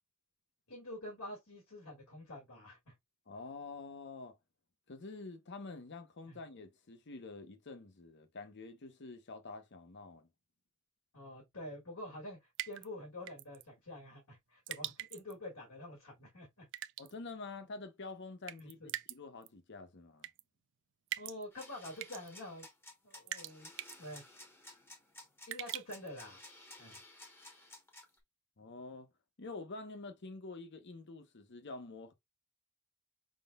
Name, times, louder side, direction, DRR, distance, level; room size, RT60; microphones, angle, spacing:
voice 1, 0.7-2.9 6.3-6.4 11.1-12.4 12.7-16.7 18.6-18.9 21.2-22.7 23.0-23.7 24.0-24.2 25.5-26.4 26.8-27.0, left 1 dB, 75° left, 1.8 m, -47 dB
voice 2, 3.3-4.4 4.9-10.3 17.0-20.3 28.6-29.1 29.4-32.1, left 3 dB, 55° left, 0.8 m, -47 dB
sound 1, 12.6-12.9 13.3-13.6 14.7-15.3 16.7-17.1 18.5-19.2 19.4-19.5 20.2-20.4 21.1-21.4 22.0-22.3 23.3-23.5 23.8-24.0 25.5-26.1, right 15 dB, 55° right, 0.3 m, -42 dB
sound 2, 21.5-28.2, left 1 dB, 10° left, 1.0 m, -54 dB
5.2 x 3.7 x 2.3 m
head